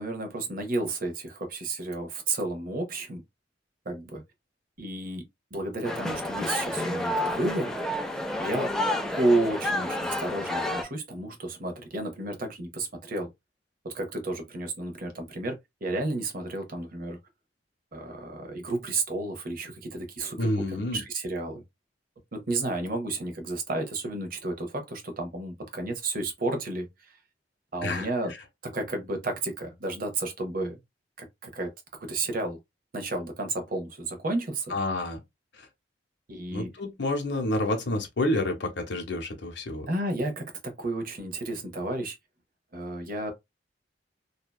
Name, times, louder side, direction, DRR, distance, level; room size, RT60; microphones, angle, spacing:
voice 1, 0.0-3.2 3.8-4.2 4.8-5.2 5.5-7.7 8.4-8.7 9.2-13.3 13.8-17.2 17.9-21.6 22.3-27.2 27.7-28.3 28.6-30.8 31.4-31.7 32.0-32.6 32.9-34.7 36.3-36.7 39.9-42.2 42.7-43.3, right 2 dB, 50° right, 0.8 m, -31 dB
sound 1, 5.8-10.8, left 1 dB, 5° left, 0.4 m, -30 dB
voice 2, 20.4-21.0 27.8-28.4 34.7-35.2 35.5-35.7 36.5-39.9, left 1 dB, 70° left, 0.7 m, -29 dB
2.7 x 2.2 x 2.2 m
head